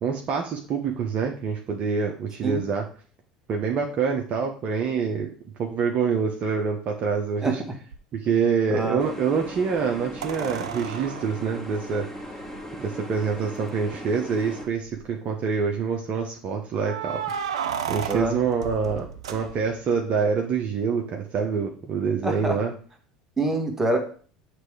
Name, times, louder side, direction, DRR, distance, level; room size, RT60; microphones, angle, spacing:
voice 1, 0.0-2.8 3.5-5.3 5.6-7.6 8.1-12.1 12.8-17.6 17.9-22.7, right 5 dB, 45° right, 2 dB, 1.1 m, -26 dB
sound 1, 7.9-8.0 10.2-12.6 13.6-13.7 13.9-14.0 14.6-15.1 16.8-19.9 22.4-22.5, right 8 dB, 75° right, 0.5 m, -34 dB
voice 2, 8.7-9.0 18.1-18.4 22.2-22.6 23.4-24.0, right 2 dB, 15° right, 3 dB, 1.7 m, -25 dB
sound 2, 9.0-14.7, equal, 5° left, 2.2 m, -38 dB
8.0 x 3.5 x 4.8 m, 0.43 s
figure-of-eight pair, 70°, 3 cm